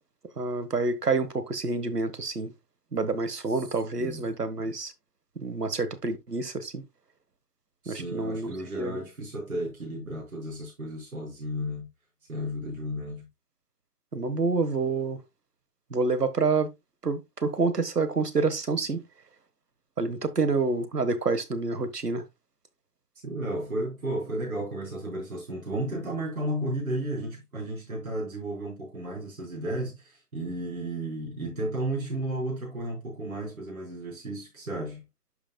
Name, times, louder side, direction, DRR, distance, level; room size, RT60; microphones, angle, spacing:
voice 1, 0.4-2.5 2.9-4.9 5.4-6.8 7.9-8.5 8.8-9.0 14.1-15.2 15.9-16.7 17.0-19.0 20.0-22.2, right 4 dB, 85° right, 1.4 m, -28 dB
voice 2, 7.8-11.9 12.3-13.3 23.2-35.0, right 1 dB, 65° right, 5.0 m, -33 dB
11.0 x 5.7 x 2.2 m
figure-of-eight pair, 145°, 46 cm